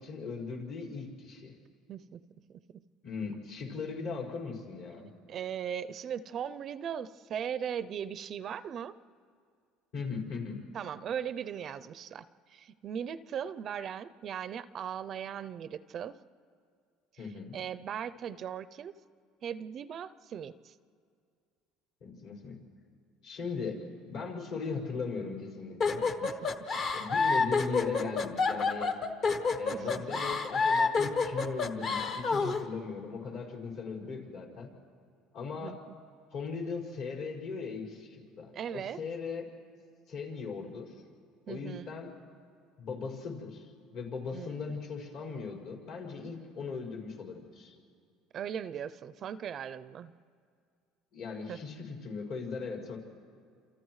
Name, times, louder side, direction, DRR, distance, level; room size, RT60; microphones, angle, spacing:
voice 1, 0.0-1.5 3.0-5.1 9.9-10.6 17.2-17.6 22.0-22.6 23.2-23.8 24.1-26.1 26.9-28.9 29.6-34.7 35.3-35.8 36.3-39.5 40.1-41.0 41.5-42.1 42.8-47.7 51.1-53.0, left 4 dB, 65° left, -5 dB, 5.5 m, -38 dB
voice 2, 1.9-2.2 2.5-2.8 5.0-9.0 10.7-12.3 12.5-16.2 17.5-18.9 19.4-20.7 26.2-26.7 29.7-30.0 35.5-35.8 38.5-39.0 41.5-41.9 44.3-44.8 48.3-50.1 51.5-51.6, right 8 dB, 45° right, 14 dB, 0.5 m, -38 dB
sound 1, 25.8-32.6, left 4 dB, 40° left, 1.0 m, -28 dB
29.5 x 27.5 x 3.2 m, 2.2 s
cardioid pair, 120°, 0 cm